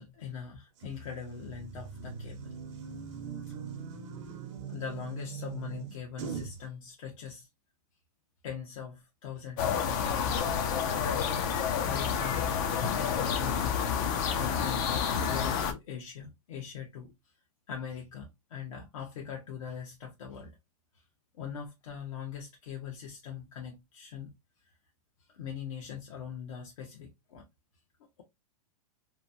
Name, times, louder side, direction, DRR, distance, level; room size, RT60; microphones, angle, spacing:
voice 1, 0.0-2.4 4.7-7.5 8.4-10.4 10.7-13.8 14.2-17.1 17.7-20.5 21.3-24.3 25.3-27.4, left 7 dB, 65° left, 0.9 m, -41 dB
sound 1, 0.8-6.6, right 6 dB, 55° right, 0.8 m, -41 dB
sound 2, 9.6-15.7, left 7 dB, 35° left, 0.5 m, -29 dB
3.0 x 2.2 x 2.6 m
supercardioid pair, 160°, 19 cm